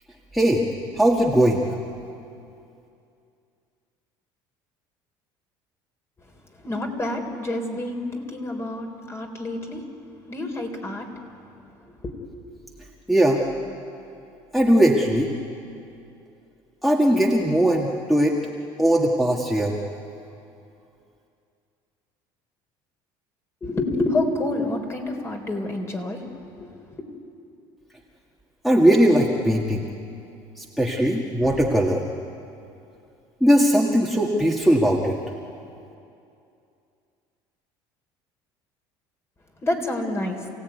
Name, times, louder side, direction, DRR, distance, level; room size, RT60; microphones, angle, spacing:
voice 1, 0.3-0.6 1.0-1.7 13.1-13.4 14.5-15.3 16.8-18.4 18.8-19.8 28.6-29.9 30.6-32.0 33.4-35.2, right 1 dB, ahead, -1 dB, 2.0 m, -19 dB
voice 2, 6.6-9.8 10.3-11.1 12.0-12.1 23.6-26.2 26.6-27.0 39.6-40.4, left 2 dB, 25° left, 3 dB, 4.1 m, -28 dB
28.5 x 17.0 x 9.5 m, 2.6 s
supercardioid pair, 105°, 10 cm